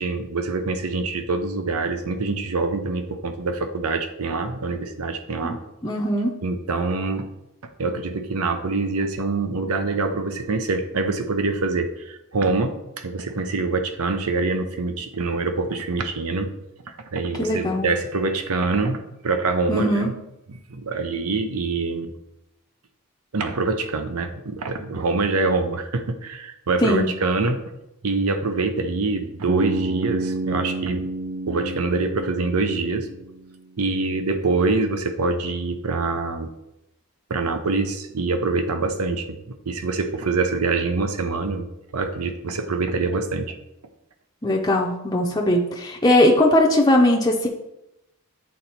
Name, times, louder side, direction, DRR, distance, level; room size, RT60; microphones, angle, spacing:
voice 1, 0.0-5.6 6.4-7.2 7.8-16.5 17.1-20.1 20.7-22.1 23.3-27.6 28.0-31.1 31.5-33.1 33.8-36.5 37.3-39.4 39.7-41.7 41.9-43.6, right 3 dB, 80° right, 7 dB, 0.7 m, -25 dB
voice 2, 5.8-6.3 17.4-17.9 19.7-20.1 26.8-27.1 44.4-47.5, left 1 dB, 15° left, -2 dB, 0.6 m, -19 dB
Bass guitar, 29.5-33.6, right 2 dB, 45° right, 0.4 m, -29 dB
8.6 x 4.0 x 4.3 m, 0.87 s
head